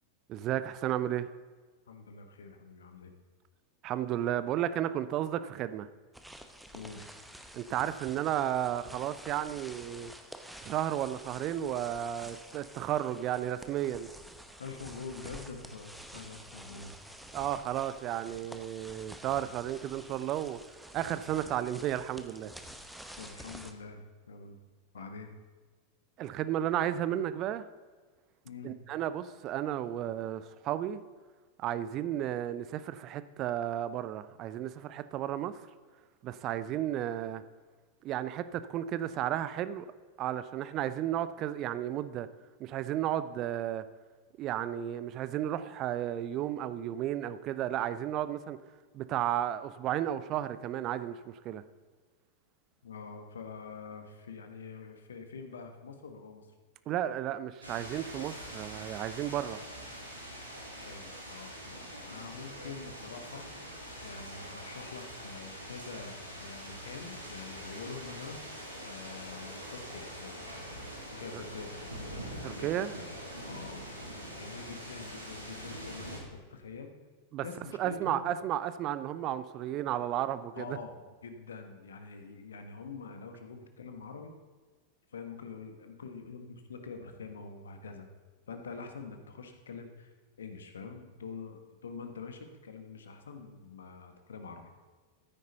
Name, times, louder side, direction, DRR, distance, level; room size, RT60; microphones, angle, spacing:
voice 1, 0.3-1.3 3.8-5.9 7.5-10.1 10.6-14.1 17.3-20.6 20.9-22.5 26.2-27.6 28.6-31.0 31.6-35.6 36.2-37.4 38.0-39.9 40.2-42.3 42.6-43.8 44.4-48.6 48.9-51.6 56.9-59.6 71.3-71.4 72.4-72.9 77.3-77.4 77.8-80.8, right 11 dB, 35° right, 0.6 m, -33 dB
voice 2, 1.9-3.1 6.7-7.1 14.6-17.2 23.2-24.6 24.9-25.3 28.4-28.8 52.8-56.5 60.7-63.5 64.0-70.5 71.1-72.9 73.4-73.8 74.4-76.9 77.4-78.3 80.5-80.9 81.2-84.3 85.1-88.1 88.5-94.7, left 4 dB, 65° left, 1.4 m, -45 dB
sound 1, 6.1-23.7, equal, ahead, 1.0 m, -49 dB
sound 2, 57.6-76.2, equal, 85° right, 2.5 m, -44 dB
14.5 x 9.4 x 4.0 m
figure-of-eight pair, 90°, 0 cm